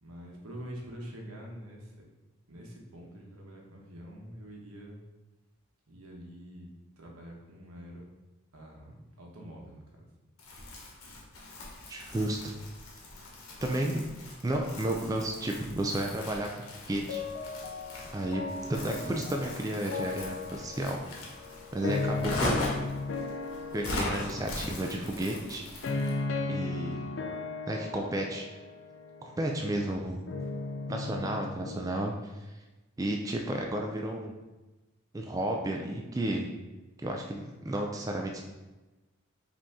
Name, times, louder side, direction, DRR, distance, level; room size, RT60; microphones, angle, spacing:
voice 1, 0.0-2.1 2.5-5.0 5.9-6.7 7.0-8.1 8.5-10.1, equal, 90° right, 0 dB, 1.0 m, -46 dB
Crumpling crinkling, 10.4-26.2, left 2 dB, 85° left, 1.1 m, -40 dB
voice 2, 11.9-12.5 13.6-14.1 14.4-16.5 16.9-17.2 18.1-18.4 18.7-21.0 21.7-22.7 23.7-26.1 26.5-27.0 27.7-28.5 29.2-30.2 30.9-32.5 33.0-34.3 35.1-36.5 37.0-38.4, right 1 dB, 15° right, 1 dB, 0.3 m, -32 dB
sound 1, 17.1-32.1, left 3 dB, 60° left, 0.4 m, -37 dB
5.2 x 2.8 x 3.6 m, 1.1 s
head